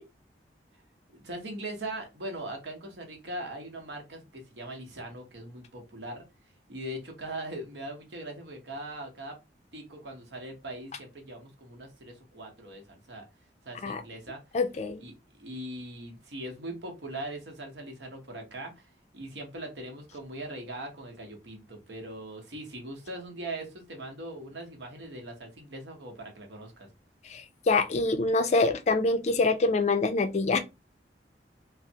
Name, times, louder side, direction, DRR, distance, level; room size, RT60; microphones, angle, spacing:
voice 1, 1.2-6.2 6.7-9.4 9.7-13.2 13.6-14.4 15.0-26.9, right 1 dB, 80° right, 0.9 m, -40 dB
voice 2, 14.5-15.0 27.3-30.6, left 3 dB, 40° left, 0.4 m, -25 dB
3.1 x 2.0 x 2.7 m
head